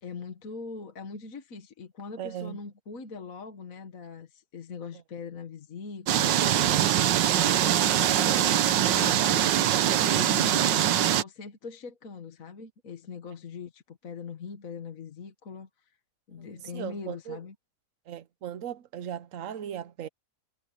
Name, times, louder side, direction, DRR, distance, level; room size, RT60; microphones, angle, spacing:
voice 1, 0.0-9.5 10.1-15.7 16.3-17.5, left 5 dB, 50° left, 1.8 m, -41 dB
voice 2, 2.2-2.6 16.6-17.4 18.1-20.1, right 10 dB, 55° right, 1.1 m, -37 dB
sound 1, 6.1-11.2, right 11 dB, 85° right, 1.6 m, -23 dB
omnidirectional pair, 1.9 m